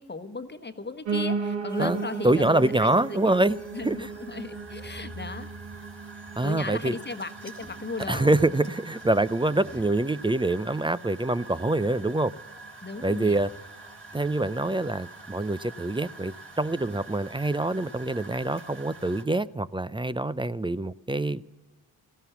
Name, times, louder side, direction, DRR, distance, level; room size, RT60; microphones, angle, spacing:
voice 1, 0.0-3.4 3.7-5.5 6.4-8.4 12.8-13.5, left 3 dB, 25° left, 1.2 m, -36 dB
Piano, 1.1-10.2 10.6-11.7 12.0-12.1 12.3-12.4 12.7-12.8 13.3-13.4, right 4 dB, 80° right, 1.5 m, -36 dB
sound 1, 1.7-19.2, right 2 dB, 30° right, 4.2 m, -46 dB
voice 2, 2.2-3.6 3.8-4.0 6.4-7.0 8.1-12.3 13.0-13.5 14.1-21.4, right 2 dB, 10° right, 0.4 m, -25 dB
15.0 x 13.0 x 7.0 m
supercardioid pair, 50°, 45 cm